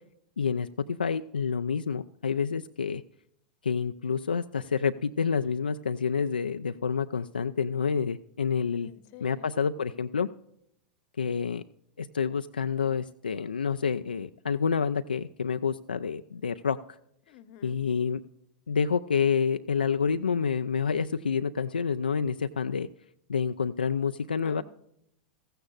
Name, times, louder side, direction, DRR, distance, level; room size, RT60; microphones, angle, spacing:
voice 1, 0.4-3.0 3.6-8.9 9.2-10.3 11.2-11.6 12.0-16.8 17.6-18.2 18.7-22.9 23.3-24.6, left 6 dB, 80° left, 0.3 m, -28 dB
voice 2, 8.8-9.5 17.3-17.8 24.4-24.6, left 10 dB, 45° left, 0.9 m, -48 dB
15.5 x 14.5 x 2.4 m
figure-of-eight pair, 95°, 5 cm